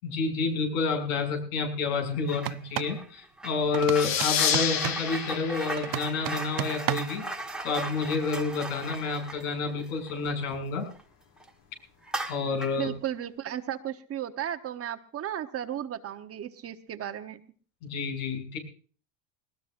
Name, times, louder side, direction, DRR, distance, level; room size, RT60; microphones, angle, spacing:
voice 1, 0.0-7.2 7.6-10.9 12.3-12.9 17.8-18.6, left 4 dB, 80° left, 3 dB, 7.1 m, -29 dB
sound 1, 2.2-2.6 2.8-11.0 11.4-11.5 12.0-12.9, right 2 dB, ahead, 1.5 m, -38 dB
sound 2, 2.4-3.0 3.7-5.1 5.8-7.2, right 19 dB, 55° right, 0.7 m, -33 dB
sound 3, 3.9-7.1, left 9 dB, 50° left, 1.6 m, -30 dB
voice 2, 12.8-17.4, right 10 dB, 35° right, 7 dB, 1.1 m, -35 dB
20.5 x 19.5 x 2.6 m, 0.41 s
supercardioid pair, 125°, 42 cm